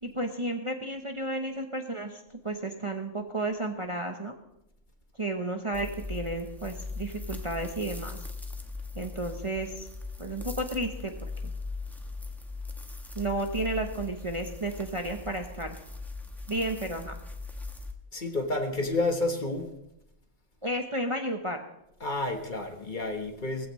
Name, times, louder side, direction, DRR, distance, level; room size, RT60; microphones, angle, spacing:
voice 1, 0.0-4.3 5.2-8.2 8.9-9.9 10.2-11.5 13.1-15.8 16.5-17.1 20.6-21.6, right 1 dB, 25° right, 4 dB, 0.9 m, -32 dB
sound 1, 5.7-17.9, left 3 dB, ahead, 1.0 m, -39 dB
voice 2, 18.1-19.7 22.0-23.7, left 2 dB, 40° left, 5 dB, 1.4 m, -30 dB
19.0 x 15.0 x 3.2 m, 0.84 s
omnidirectional pair, 1.3 m